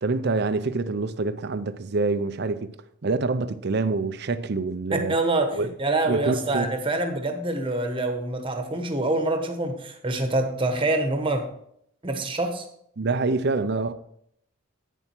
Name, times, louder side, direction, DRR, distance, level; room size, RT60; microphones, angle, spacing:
voice 1, 0.0-2.7 3.0-5.2 5.5-5.7 6.1-6.7 13.0-13.9, right 3 dB, 50° right, 0.5 m, -26 dB
voice 2, 4.9-11.5 12.0-12.6, right 2 dB, 25° right, 1.1 m, -26 dB
9.3 x 7.2 x 4.5 m
head